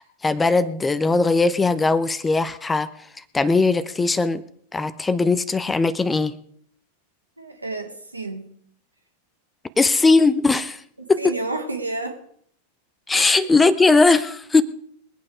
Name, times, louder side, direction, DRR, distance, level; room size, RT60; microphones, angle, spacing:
voice 1, 0.0-2.9 3.3-4.4 4.7-6.3 9.8-10.8 11.1-11.3 13.1-14.6, left 3 dB, 10° left, 15 dB, 0.8 m, -19 dB
voice 2, 7.4-8.5 11.0-12.2 13.2-13.5, right 2 dB, 85° right, 3 dB, 2.3 m, -31 dB
22.5 x 8.6 x 4.9 m, 0.63 s
figure-of-eight pair, 90°, 0 cm